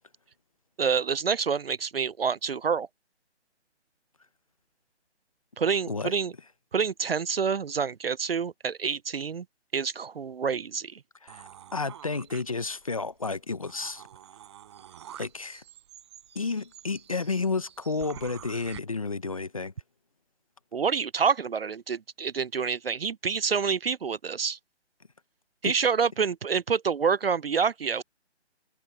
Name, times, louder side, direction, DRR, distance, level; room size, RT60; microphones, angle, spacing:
voice 1, 0.8-2.9 5.6-6.3 6.7-9.4 9.7-11.0 20.7-24.6 25.6-28.0, right 6 dB, 60° right, 0.5 m, -27 dB
voice 2, 11.2-14.0 15.2-15.6 16.3-19.7 25.6-25.7, left 4 dB, 30° left, 0.7 m, -31 dB
sound 1, 11.3-13.0 13.4-13.5 13.7-18.8, right 10 dB, 25° right, 6.3 m, -48 dB
hypercardioid pair, 170°, 35 cm